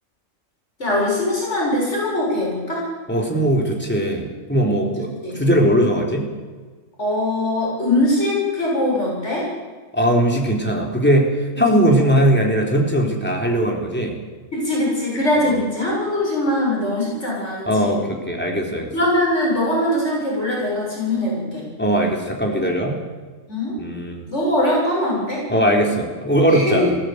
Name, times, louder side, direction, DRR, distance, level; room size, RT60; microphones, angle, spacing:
voice 1, 0.8-2.9 5.2-5.4 7.0-9.5 11.7-12.1 14.5-17.9 18.9-21.7 23.5-23.8 24.3-25.5 26.5-26.9, left 1 dB, 60° left, -4 dB, 7.4 m, -22 dB
voice 2, 3.1-5.1 5.3-6.3 9.9-14.1 15.4-15.5 17.7-18.9 21.8-23.0 23.8-24.2 25.5-27.0, equal, 10° left, 0 dB, 4.0 m, -19 dB
21.5 x 16.0 x 8.2 m, 1.4 s
omnidirectional pair, 1.4 m